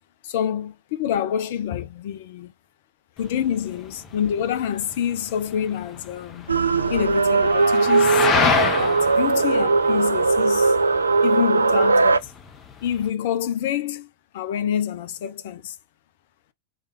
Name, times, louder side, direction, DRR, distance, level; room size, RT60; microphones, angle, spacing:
voice 1, 0.2-2.5 3.2-6.5 6.9-8.3 8.8-10.8 11.2-12.3 12.8-14.1 14.3-15.8, left 9 dB, 55° left, 0.7 m, -27 dB
sound 1, 3.2-13.1, left 6 dB, 25° left, 0.9 m, -29 dB
sound 2, 6.5-12.2, right 4 dB, 80° right, 0.3 m, -19 dB
4.0 x 3.3 x 3.2 m
figure-of-eight pair, 90°, 0 cm